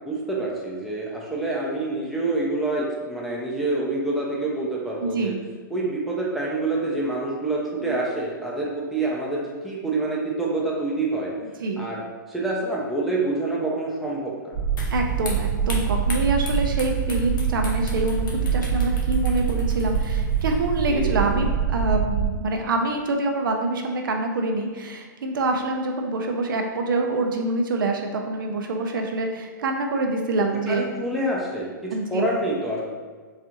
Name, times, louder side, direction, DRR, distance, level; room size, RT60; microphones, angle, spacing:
voice 1, 0.0-5.3 5.7-11.3 11.8-12.0 12.3-14.5 20.9-21.4 30.5-32.8, right 2 dB, ahead, -5 dB, 0.5 m, -27 dB
voice 2, 5.0-5.4 7.8-7.9 11.6-11.9 14.9-30.9 31.9-32.2, right 2 dB, 75° right, 3 dB, 0.5 m, -26 dB
sound 1, 14.5-22.3, right 7 dB, 55° right, 1.1 m, -24 dB
sound 2, 14.8-21.3, left 2 dB, 70° left, 0.8 m, -40 dB
4.3 x 2.4 x 2.6 m, 1.5 s
hypercardioid pair, 140°, 11 cm